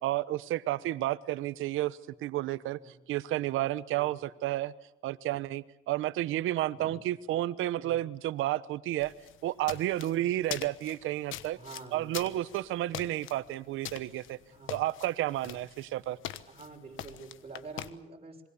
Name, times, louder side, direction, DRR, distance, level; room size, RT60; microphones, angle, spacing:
voice 1, 0.0-2.8 3.1-4.7 5.0-9.1 9.4-11.6 11.9-14.4 14.7-16.2, right 15 dB, 90° right, 16 dB, 1.0 m, -31 dB
voice 2, 7.8-8.1 11.5-12.4 14.4-14.8 16.5-18.5, right 3 dB, 30° right, 1 dB, 6.5 m, -48 dB
sound 1, 9.0-17.9, left 11 dB, 85° left, 1.2 m, -43 dB
26.5 x 23.0 x 7.0 m, 0.88 s
cardioid pair, 90°, 20 cm